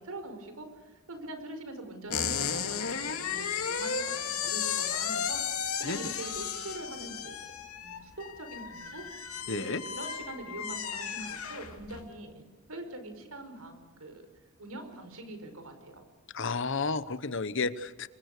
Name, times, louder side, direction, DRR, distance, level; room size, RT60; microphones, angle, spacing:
voice 1, 0.0-7.5 7.8-9.0 9.4-12.4 12.7-14.2 14.6-16.0, right 2 dB, 80° right, 7 dB, 4.9 m, -43 dB
sound 1, 2.1-12.1, left 7 dB, 85° left, 2.6 m, -34 dB
voice 2, 9.5-9.8 16.3-18.1, left 4 dB, 60° left, 15 dB, 1.0 m, -32 dB
27.0 x 23.5 x 6.7 m, 1.3 s
head